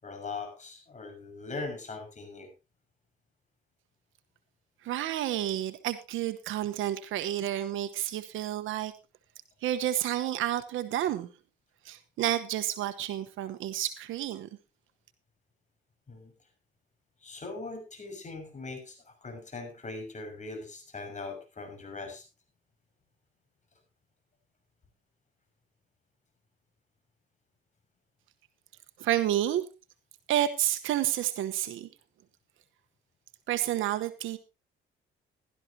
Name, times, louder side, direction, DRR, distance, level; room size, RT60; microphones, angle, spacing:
voice 1, 0.0-2.5 16.1-16.3 17.2-22.2, left 3 dB, 35° left, 6 dB, 6.1 m, -40 dB
voice 2, 4.8-8.9 9.6-11.3 11.8-14.5 29.0-29.6 30.3-31.9 33.5-34.4, right 12 dB, 85° right, 10 dB, 1.1 m, -30 dB
16.5 x 12.5 x 2.8 m, 0.29 s
cardioid pair, 90°, 20 cm